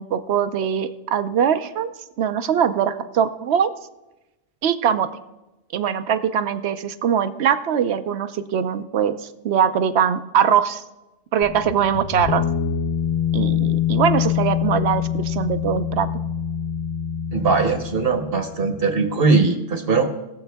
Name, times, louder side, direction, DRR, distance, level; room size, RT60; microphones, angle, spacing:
voice 1, 0.0-3.7 4.6-5.1 5.7-9.2 9.4-10.8 11.3-12.4 13.3-16.1, right 8 dB, 70° right, 11 dB, 0.9 m, -21 dB
sound 1, 11.4-18.8, left 9 dB, 65° left, 1.0 m, -25 dB
voice 2, 17.3-20.1, right 4 dB, 55° right, 7 dB, 1.2 m, -20 dB
19.5 x 7.1 x 3.4 m, 1.0 s
omnidirectional pair, 1.2 m